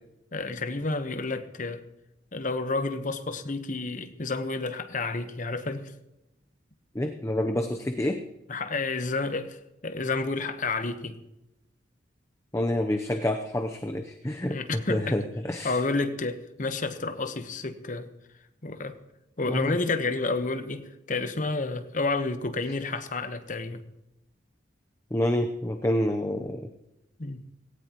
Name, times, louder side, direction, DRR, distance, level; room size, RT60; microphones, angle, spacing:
voice 1, 0.3-1.8 2.3-5.9 8.5-11.2 14.5-15.1 15.6-18.1 18.6-19.0 19.4-23.8 27.2-27.4, left 3 dB, 45° left, 1.1 m, -30 dB
voice 2, 6.9-8.2 12.5-15.8 19.5-19.8 25.1-26.7, left 1 dB, 15° left, 0.7 m, -28 dB
17.5 x 17.5 x 3.0 m
head